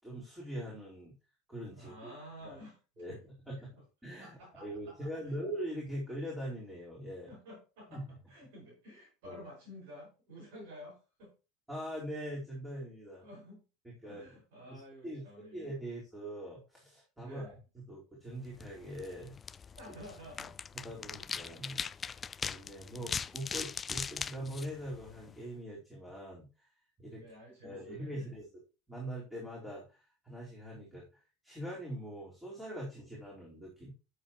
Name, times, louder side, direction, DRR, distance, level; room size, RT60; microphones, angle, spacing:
voice 1, 0.0-1.1 1.5-2.2 2.4-2.6 3.0-3.2 3.5-7.3 7.9-8.0 9.2-9.4 11.7-13.2 14.0-14.2 14.7-15.2 15.5-17.5 17.9-19.3 20.8-21.8 22.4-26.7 27.0-27.2 27.6-28.6 28.9-33.9, right 1 dB, 5° right, -5 dB, 4.3 m, -42 dB
voice 2, 1.8-2.8 3.1-3.2 3.6-3.7 4.2-5.4 7.3-8.0 8.3-11.3 13.2-13.6 14.0-15.7 17.2-17.6 19.8-20.5 22.9-23.0 27.1-28.4, equal, 65° right, -1 dB, 5.4 m, -51 dB
sound 1, 18.5-25.4, left 6 dB, 25° left, 0.4 m, -41 dB
13.0 x 6.7 x 3.1 m, 0.30 s
figure-of-eight pair, 80°, 0 cm